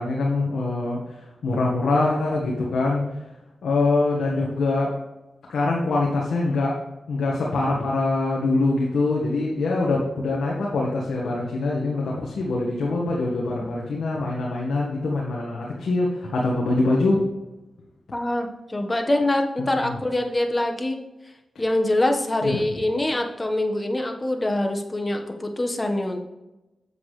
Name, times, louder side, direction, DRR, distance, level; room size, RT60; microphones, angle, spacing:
voice 1, 0.0-3.0 3.6-4.9 5.5-6.7 7.1-17.2 19.8-20.0 22.4-22.6, left 2 dB, 85° left, -3 dB, 1.5 m, -24 dB
voice 2, 18.1-21.0 21.6-26.2, left 1 dB, 25° left, 3 dB, 1.4 m, -24 dB
8.3 x 7.3 x 3.3 m, 1.0 s
cardioid pair, 60°, 0 cm